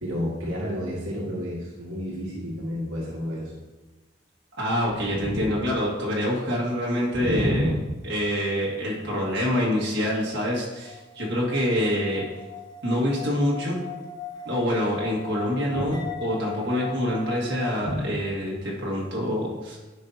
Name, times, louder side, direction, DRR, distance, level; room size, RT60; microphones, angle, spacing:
voice 1, 0.0-3.5 5.2-5.4 7.1-7.7 15.7-15.9 17.8-18.0, equal, 70° right, -4 dB, 1.6 m, -29 dB
voice 2, 4.6-7.7 8.0-12.2 12.8-13.8 14.5-19.8, equal, 55° right, -4 dB, 1.7 m, -26 dB
sound 1, 9.4-17.8, left 6 dB, 20° left, 0.9 m, -39 dB
9.6 x 5.5 x 2.7 m, 1.1 s
head